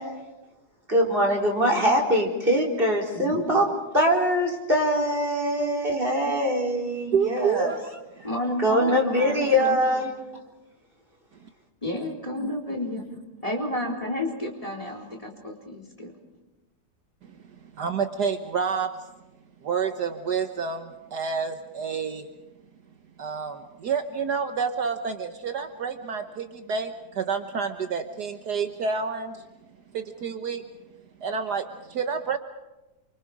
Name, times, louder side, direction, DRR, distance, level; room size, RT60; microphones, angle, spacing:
voice 1, 0.9-7.7 8.6-10.1, equal, 30° right, 1 dB, 4.0 m, -23 dB
voice 2, 3.1-3.5 8.2-9.8 11.8-13.1 13.4-16.1, left 1 dB, 20° left, 1 dB, 4.0 m, -31 dB
voice 3, 7.1-7.8 12.4-12.5 17.2-17.3 17.8-19.0 19.6-22.3 23.2-29.4 29.9-30.7 31.2-32.4, right 6 dB, 65° right, 7 dB, 1.6 m, -29 dB
28.5 x 25.5 x 4.9 m, 1.0 s
omnidirectional pair, 2.0 m